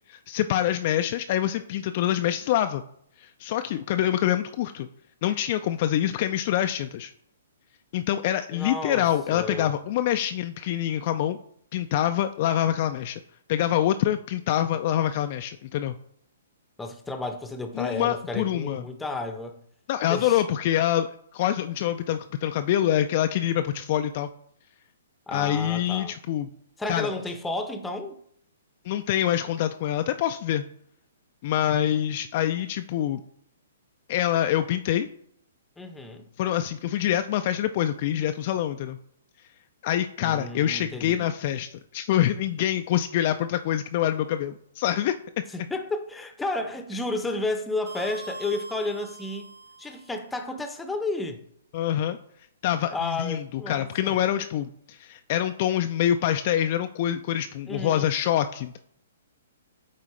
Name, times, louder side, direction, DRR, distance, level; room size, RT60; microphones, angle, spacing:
voice 1, 0.3-2.8 3.2-4.9 5.2-7.1 7.9-11.4 11.7-13.2 13.5-15.9 17.8-18.8 19.9-24.3 25.3-26.5 26.9-27.1 28.9-30.6 31.4-33.2 34.1-35.1 36.4-39.0 39.8-45.2 51.7-52.2 52.6-58.8, left 11 dB, 45° left, 8 dB, 0.3 m, -25 dB
voice 2, 8.5-9.7 16.8-19.6 20.1-20.4 25.3-26.1 26.8-28.2 35.8-36.3 40.2-41.3 45.5-49.5 49.8-51.4 52.9-54.2 57.7-58.1, left 2 dB, 5° left, 7 dB, 0.7 m, -32 dB
sound 1, 47.9-50.2, right 3 dB, 85° right, 0.5 m, -43 dB
8.5 x 4.0 x 3.1 m, 0.68 s
figure-of-eight pair, 120°, 0 cm